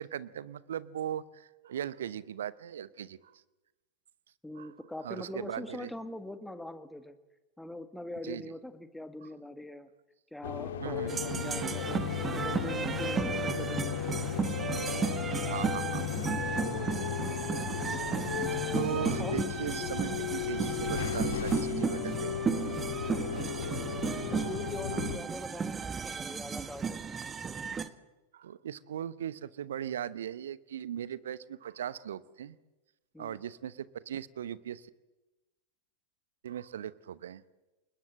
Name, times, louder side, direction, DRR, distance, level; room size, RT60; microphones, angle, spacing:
voice 1, 0.0-3.4 4.5-4.7 5.0-5.9 8.2-8.5 9.2-9.3 10.8-11.2 14.7-14.8 15.4-16.0 18.7-22.4 23.3-23.5 24.9-25.1 28.3-32.6 33.2-34.9 36.4-37.4, right 10 dB, 60° right, 18 dB, 0.9 m, -39 dB
voice 2, 4.4-7.2 7.6-9.9 10.3-14.0 19.2-19.4 23.2-23.8 24.3-27.0 33.1-33.4, left 1 dB, 5° left, 10 dB, 1.8 m, -43 dB
sound 1, 10.4-25.2, left 8 dB, 60° left, 2.2 m, -35 dB
sound 2, 11.1-27.9, right 6 dB, 20° right, 1.2 m, -34 dB
29.0 x 21.0 x 7.6 m, 1.1 s
figure-of-eight pair, 90°, 0 cm